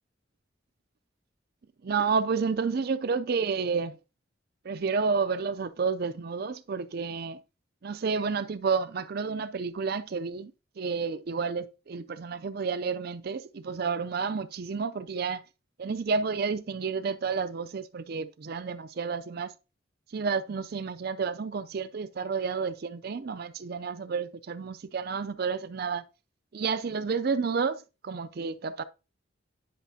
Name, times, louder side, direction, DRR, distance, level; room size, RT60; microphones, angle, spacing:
voice 1, 1.8-4.0 4.6-7.4 7.8-15.4 15.8-19.5 20.1-26.0 26.5-28.8, right 5 dB, 50° right, 0.4 m, -30 dB
10.5 x 5.8 x 2.8 m
head